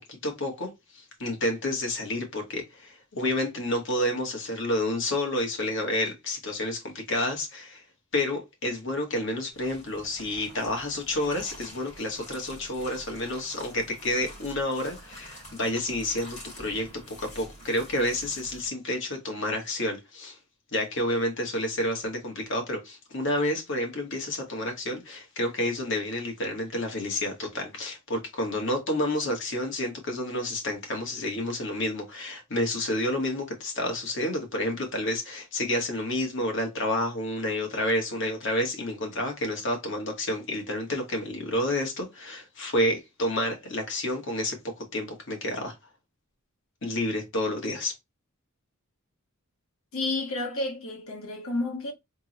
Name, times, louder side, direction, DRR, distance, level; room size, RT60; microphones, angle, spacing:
voice 1, 0.1-7.8 8.1-16.9 17.2-20.4 20.7-44.6 44.9-45.8 46.8-47.9, left 1 dB, 60° left, 1.9 m, -29 dB
sound 1, 9.5-18.7, equal, 35° left, 2.9 m, -47 dB
voice 2, 49.9-51.9, left 2 dB, 75° left, 1.6 m, -31 dB
3.7 x 3.7 x 3.0 m
head